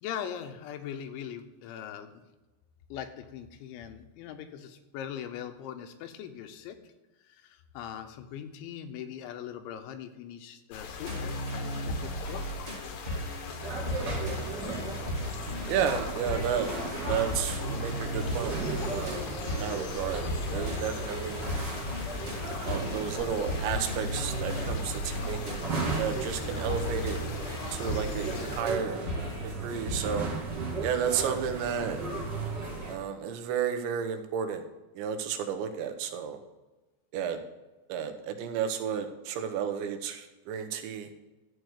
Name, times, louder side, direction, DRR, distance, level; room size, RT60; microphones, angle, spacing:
voice 1, 0.0-2.2 2.9-6.8 7.2-12.5, left 9 dB, 85° left, 7 dB, 3.3 m, -41 dB
sound 1, 10.7-28.6, left 6 dB, 70° left, 2.3 m, -41 dB
sound 2, 11.0-30.0, equal, 15° right, 2.4 m, -36 dB
sound 3, 13.6-32.9, right 3 dB, 35° right, 1.8 m, -36 dB
voice 2, 15.7-16.7 17.1-18.6 18.9-20.2 20.5-21.4 22.7-25.7 26.0-27.2 27.7-29.0 29.4-30.3 30.8-32.0 32.9-34.7 35.0-36.4 37.1-37.4 37.9-41.1, right 8 dB, 80° right, 6 dB, 3.2 m, -32 dB
13.0 x 4.7 x 8.1 m, 1.1 s
omnidirectional pair, 5.2 m